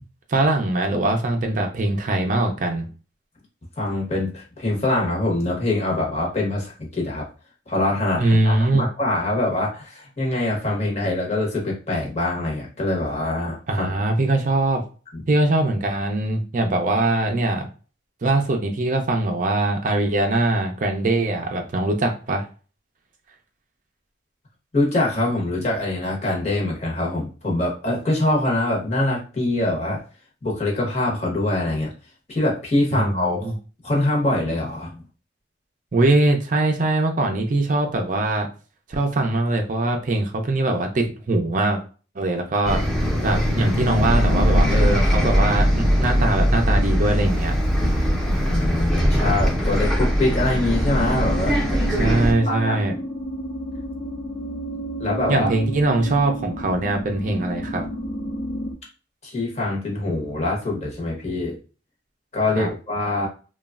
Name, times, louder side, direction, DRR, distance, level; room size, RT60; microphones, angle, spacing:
voice 1, 0.3-2.9 8.2-8.9 13.7-14.8 15.3-17.7 18.2-22.5 32.9-33.5 35.9-38.5 38.9-41.8 42.2-42.8 43.2-47.5 51.9-52.9 55.3-57.9 62.6-62.7, right 2 dB, 45° right, 3 dB, 0.4 m, -22 dB
voice 2, 3.8-7.3 7.7-13.9 15.1-15.2 24.7-30.0 30.4-31.9 32.3-33.5 33.8-35.0 48.4-51.8 52.4-52.8 55.0-55.5 59.2-61.6 62.3-63.3, left 2 dB, 35° left, -2 dB, 0.9 m, -24 dB
Bus, 42.6-52.3, equal, ahead, 0.6 m, -20 dB
sound 1, 50.5-58.7, right 1 dB, 60° left, 0.6 m, -31 dB
3.0 x 2.2 x 2.3 m, 0.36 s
head